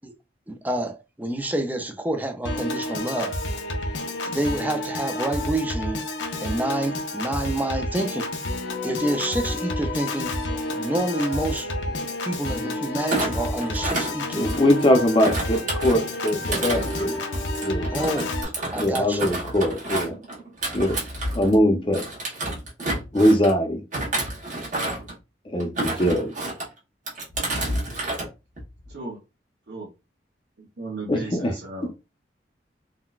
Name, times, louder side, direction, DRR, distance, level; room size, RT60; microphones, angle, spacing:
voice 1, 0.5-3.4 4.0-6.0 6.4-8.3 8.8-10.3 10.7-11.7 12.0-14.5 17.9-18.4 18.7-19.2, right 1 dB, 10° right, 0.4 m, -28 dB
Piano / Organ, 2.4-18.4, left 1 dB, 85° left, 0.6 m, -30 dB
Thump thud, 13.0-14.8 15.2-21.6 21.9-23.5 23.9-25.1 25.6-26.7 27.1-28.3 28.6-28.9, right 2 dB, 45° right, 1.1 m, -30 dB
voice 2, 14.4-17.2 17.6-17.8 18.7-20.2 20.7-21.0 21.3-22.0 23.1-23.8 25.5-26.3 31.1-31.5, equal, 30° left, 0.6 m, -21 dB
voice 3, 30.6-32.0, right 2 dB, 65° right, 0.8 m, -35 dB
3.7 x 2.2 x 2.3 m
head